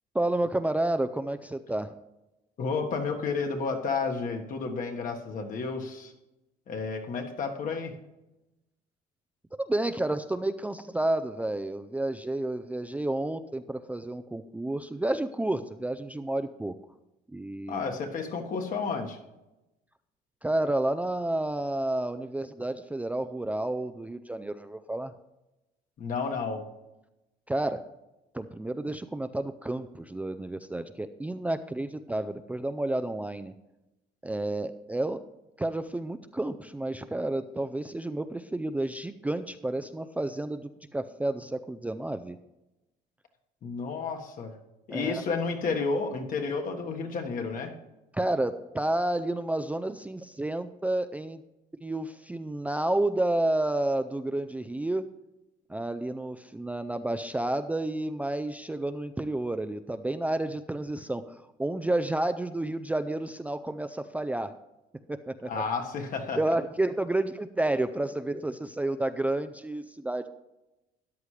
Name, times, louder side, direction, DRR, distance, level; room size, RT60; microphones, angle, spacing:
voice 1, 0.1-1.9 9.6-16.7 17.3-17.9 20.4-25.1 27.5-27.8 28.3-33.5 34.2-35.2 35.6-42.4 44.9-45.2 48.1-51.4 51.8-55.1 55.7-64.5 65.1-65.5 66.4-70.3, right 1 dB, 10° right, 9 dB, 0.4 m, -30 dB
voice 2, 2.6-6.1 6.7-8.0 17.7-19.2 26.0-26.7 43.6-44.5 44.9-47.7 65.4-66.4, left 4 dB, 55° left, 3 dB, 1.6 m, -31 dB
13.5 x 9.7 x 3.3 m, 0.97 s
cardioid pair, 110°, 17 cm